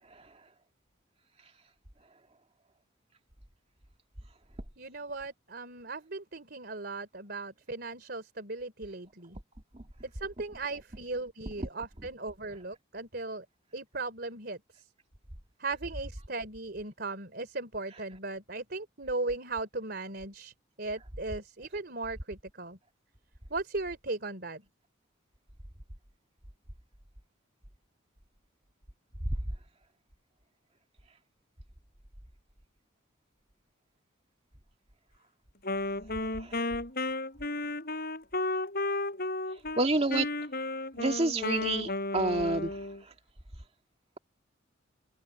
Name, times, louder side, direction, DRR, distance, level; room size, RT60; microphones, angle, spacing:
voice 1, 4.8-9.4 10.1-13.5 13.7-14.8 15.6-20.5 20.8-22.8 23.5-24.6, right 3 dB, 55° right, 3.7 m, -37 dB
Wind instrument woodwind instrument, 35.6-39.8 40.1-43.0, left 2 dB, 50° left, 7.1 m, -33 dB
voice 2, 39.8-40.3 41.0-42.7, right 2 dB, 30° right, 2.3 m, -28 dB
open air
head